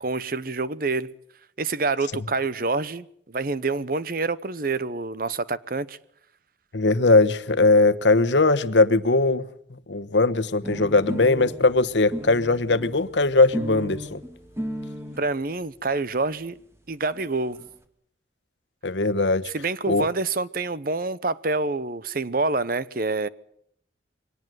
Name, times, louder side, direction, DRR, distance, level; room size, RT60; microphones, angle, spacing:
voice 1, 0.0-1.1 1.6-6.0 15.2-16.6 16.9-17.6 19.5-23.3, right 3 dB, 50° right, 0.9 m, -27 dB
voice 2, 6.7-9.4 9.7-14.2 18.8-19.4 19.9-20.0, left 3 dB, 75° left, 1.1 m, -20 dB
sound 1, 10.6-15.2 16.1-16.2 16.4-16.5 16.8-16.9 17.0-17.7, equal, 15° right, 2.3 m, -35 dB
23.5 x 18.5 x 7.9 m
head